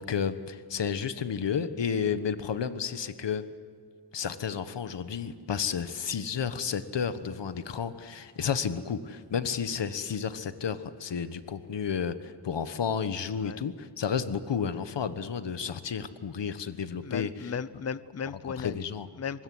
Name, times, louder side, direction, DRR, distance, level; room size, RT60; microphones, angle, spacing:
voice 1, 0.0-3.4 4.1-17.5 18.6-19.1, left 7 dB, 70° left, 12 dB, 1.3 m, -32 dB
voice 2, 17.0-18.8 19.2-19.4, left 6 dB, 35° left, 17 dB, 0.7 m, -35 dB
25.0 x 21.0 x 7.9 m, 2.1 s
wide cardioid pair, 125°, 44 cm